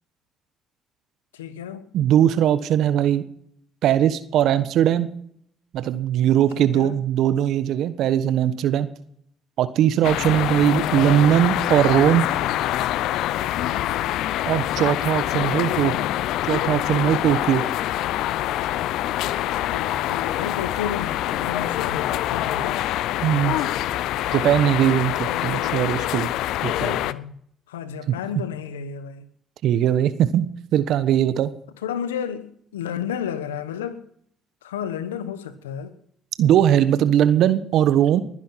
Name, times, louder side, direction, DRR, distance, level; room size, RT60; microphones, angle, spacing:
voice 1, 1.3-1.9 6.6-7.0 15.6-16.1 19.7-22.8 25.2-26.1 26.6-27.4 27.7-29.3 31.8-34.0 34.6-35.9, left 8 dB, 90° left, 1.2 m, -32 dB
voice 2, 1.9-3.3 3.8-5.1 5.7-8.9 9.6-12.3 14.5-15.9 16.5-17.6 23.2-23.6 24.3-26.3 26.6-27.0 28.1-28.2 29.6-31.5 36.4-38.2, right 10 dB, 65° right, 1.2 m, -20 dB
sound 1, 10.0-27.1, left 13 dB, 70° left, 0.6 m, -25 dB
21.0 x 11.0 x 5.8 m
hypercardioid pair, 55°, 0 cm